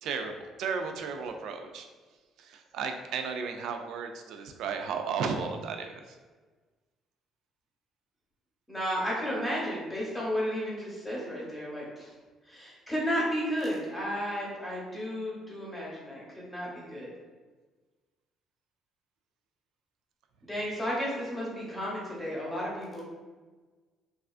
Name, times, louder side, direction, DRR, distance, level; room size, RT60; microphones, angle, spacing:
voice 1, 0.0-1.9 2.4-6.2, right 5 dB, 70° right, 6 dB, 0.3 m, -34 dB
voice 2, 8.7-12.1 12.5-17.1 20.4-23.0, equal, 10° left, -5 dB, 0.8 m, -33 dB
3.4 x 2.4 x 2.4 m, 1.3 s
cardioid pair, 150°, 0 cm